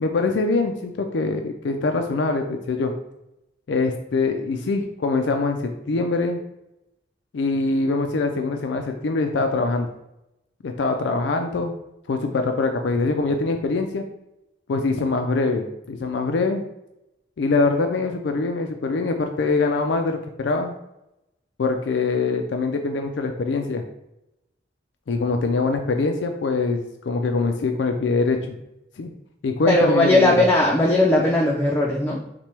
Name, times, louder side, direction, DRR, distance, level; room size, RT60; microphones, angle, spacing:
voice 1, 0.0-2.9 3.7-6.4 7.3-9.9 10.6-11.7 12.1-14.0 14.7-16.6 17.4-20.7 21.6-23.8 25.1-28.4 29.0-29.1 29.4-30.4, left 3 dB, 85° left, 5 dB, 0.4 m, -23 dB
voice 2, 29.7-32.3, left 1 dB, 10° left, -3 dB, 0.4 m, -18 dB
5.8 x 2.2 x 3.3 m, 0.87 s
head